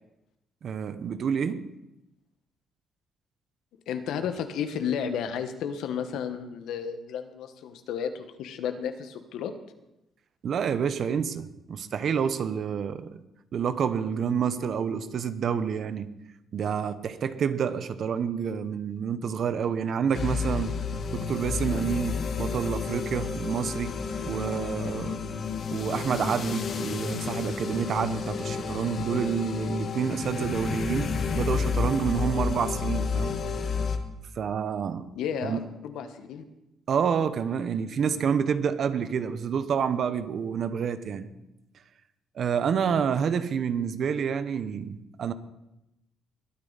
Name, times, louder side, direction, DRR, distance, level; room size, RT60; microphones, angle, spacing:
voice 1, 0.6-1.7 10.4-13.2 13.5-16.1 16.5-20.8 21.1-23.9 24.2-25.2 25.7-33.3 34.4-35.1 35.4-35.6 36.9-41.3 42.4-45.3, right 7 dB, 60° right, 0.9 m, -28 dB
voice 2, 3.9-9.5 35.1-36.4, left 7 dB, 85° left, 1.3 m, -32 dB
sound 1, 20.1-34.0, left 5 dB, 55° left, 1.4 m, -31 dB
21.5 x 9.1 x 4.1 m
cardioid pair, 95°, 0 cm